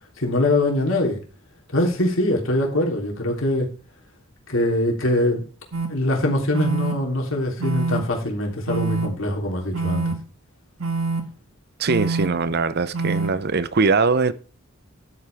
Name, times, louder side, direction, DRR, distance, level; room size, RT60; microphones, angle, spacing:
voice 1, 0.2-1.2 1.7-3.7 4.5-5.4 5.9-10.1, left 1 dB, 65° left, 3.4 m, -23 dB
sound 1, 5.7-5.9 6.5-6.9 7.6-8.0 8.7-9.1 9.7-10.1 10.8-11.2 11.9-12.3 12.9-13.3, right 4 dB, 65° right, 1.8 m, -25 dB
voice 2, 11.8-14.3, right 4 dB, 50° right, 0.7 m, -21 dB
12.0 x 8.5 x 3.5 m
head